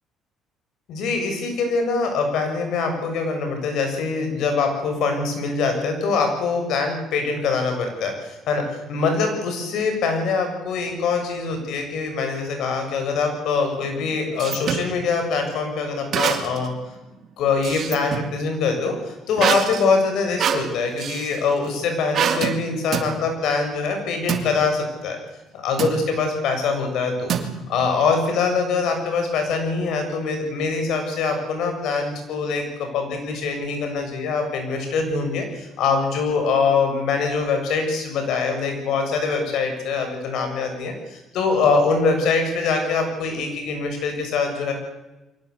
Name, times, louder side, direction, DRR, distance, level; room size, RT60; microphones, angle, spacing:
voice 1, 0.9-16.7 17.4-25.2 25.5-27.3 27.7-40.9 41.3-44.7, left 4 dB, 70° left, 5 dB, 6.9 m, -23 dB
sound 1, 13.8-14.9 16.1-16.7 17.1-18.3 19.4-21.4 22.1-22.6 22.9-23.1 24.3-24.5 25.8-26.0 27.3-27.9, right 8 dB, 50° right, 2.6 m, -25 dB
23.0 x 18.5 x 8.3 m, 1.0 s
cardioid pair, 125°, 0 cm